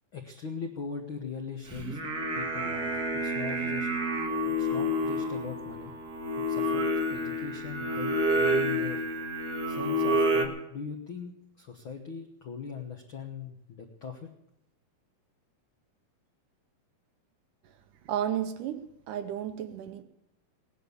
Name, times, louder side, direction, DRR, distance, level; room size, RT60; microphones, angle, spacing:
voice 1, 0.1-2.0 2.3-3.9 4.4-5.9 6.5-6.8 7.1-9.0 9.7-14.3, left 5 dB, 70° left, 1.2 m, -40 dB
Singing, 1.7-10.5, equal, 55° right, 1.0 m, -29 dB
voice 2, 18.0-20.0, right 10 dB, 70° right, 2.3 m, -33 dB
18.0 x 10.0 x 7.0 m
omnidirectional pair, 4.2 m